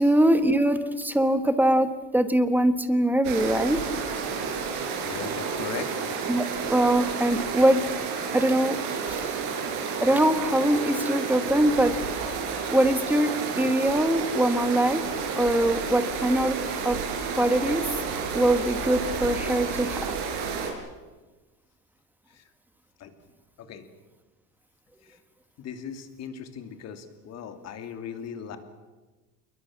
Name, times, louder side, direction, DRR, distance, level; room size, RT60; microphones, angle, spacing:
voice 1, 0.0-3.8 6.3-7.8 8.3-9.3 10.0-11.9 12.7-15.0 15.4-17.0 17.4-17.9 18.3-20.1, right 1 dB, 5° right, 10 dB, 1.3 m, -23 dB
sound 1, 3.2-20.7, right 5 dB, 90° right, 6.0 m, -31 dB
voice 2, 5.0-6.2 16.3-16.5 22.3-22.5 23.0-23.1 23.6-23.9 25.0-25.2 25.6-28.6, left 7 dB, 45° left, 8 dB, 2.7 m, -39 dB
28.0 x 22.0 x 7.3 m, 1.2 s
cardioid pair, 165°, 38 cm